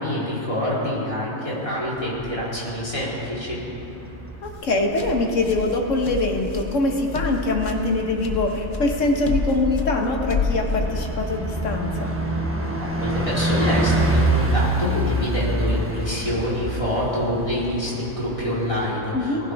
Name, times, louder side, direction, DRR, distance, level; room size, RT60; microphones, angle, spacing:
voice 1, 0.0-3.6 13.0-19.5, left 1 dB, 25° left, -8 dB, 3.8 m, -26 dB
Bus, 1.9-18.9, right 1 dB, 10° right, 1.0 m, -28 dB
voice 2, 4.4-12.1 19.1-19.4, left 2 dB, 80° left, 2 dB, 1.6 m, -23 dB
sound 1, 4.4-11.4, left 5 dB, 45° left, 1.0 m, -30 dB
19.5 x 15.0 x 3.5 m, 3.0 s
omnidirectional pair, 1.3 m